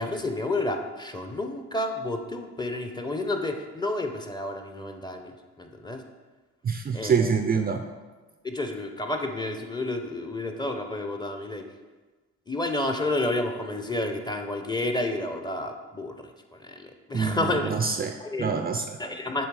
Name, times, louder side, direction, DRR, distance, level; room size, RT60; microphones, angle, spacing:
voice 1, 0.0-6.0 6.9-7.3 8.4-11.6 12.5-17.7 18.2-18.4 19.0-19.5, left 2 dB, 15° left, 4 dB, 0.7 m, -30 dB
voice 2, 6.6-7.8 17.1-18.8, right 6 dB, 30° right, 6 dB, 0.4 m, -26 dB
7.2 x 3.3 x 4.8 m, 1.3 s
cardioid pair, 90°, 30 cm